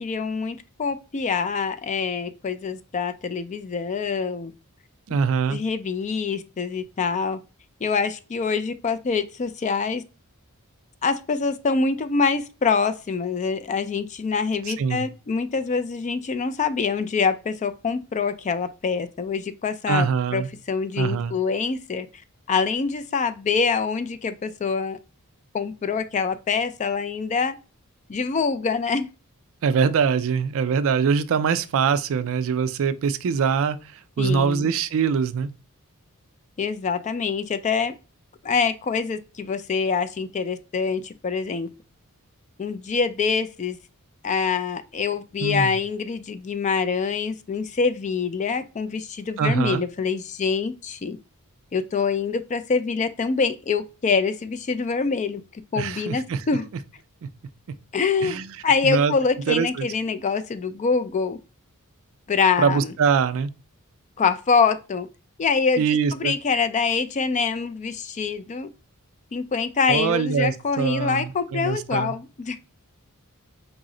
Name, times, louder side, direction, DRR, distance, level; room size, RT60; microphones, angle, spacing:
voice 1, 0.0-4.5 5.5-7.4 7.8-10.0 11.0-22.1 22.5-25.0 25.5-27.6 28.1-29.1 34.2-34.7 36.6-37.9 38.4-41.7 42.6-43.8 44.2-51.2 51.7-55.4 55.7-56.7 57.9-61.4 62.3-62.9 64.2-65.1 65.4-65.8 66.1-68.7 69.3-72.6, left 5 dB, 30° left, 0.3 m, -25 dB
voice 2, 5.1-5.6 14.7-15.1 19.9-20.5 21.0-21.4 29.6-35.5 45.4-45.8 49.4-49.8 55.8-56.4 57.2-57.3 58.2-58.5 58.8-59.1 59.5-59.9 62.6-63.5 65.8-66.4 69.9-72.1, right 6 dB, 65° right, 0.4 m, -23 dB
4.8 x 2.0 x 3.7 m
head